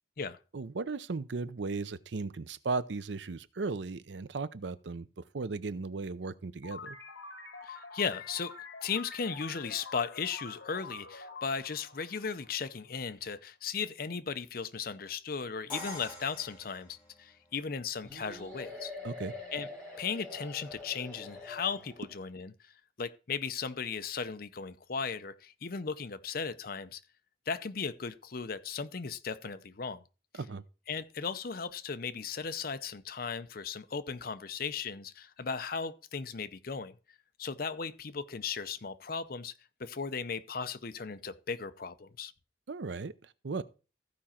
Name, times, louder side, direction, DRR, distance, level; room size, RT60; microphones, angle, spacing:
voice 1, 0.5-5.1 5.3-7.0 19.0-19.3 30.4-30.6 42.7-43.6, right 4 dB, 75° right, 0.6 m, -36 dB
sound 1, 6.6-12.9, left 4 dB, 80° left, 1.5 m, -47 dB
voice 2, 7.6-8.6 8.8-18.9 19.5-19.7 20.0-27.0 27.5-30.0 30.9-37.0 37.4-39.5 39.8-42.3, left 5 dB, 50° left, 0.6 m, -36 dB
Crash cymbal, 15.7-17.6, left 2 dB, 25° left, 3.2 m, -45 dB
sound 2, 18.0-22.2, left 2 dB, 10° left, 4.2 m, -45 dB
14.5 x 5.0 x 4.3 m
head